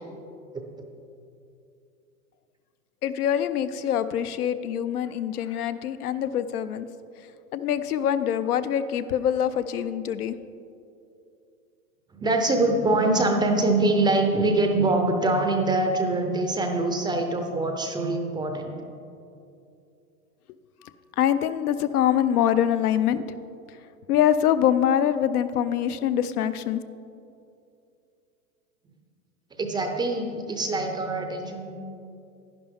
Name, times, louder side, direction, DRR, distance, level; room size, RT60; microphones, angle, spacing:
voice 1, 3.0-6.9 7.5-10.4 21.2-23.2 24.1-26.8, left 10 dB, 75° left, 12 dB, 0.7 m, -24 dB
voice 2, 12.1-18.8 29.6-31.8, right 2 dB, 10° right, 4 dB, 0.5 m, -24 dB
11.0 x 10.5 x 3.5 m, 2.6 s
hypercardioid pair, 115°, 45 cm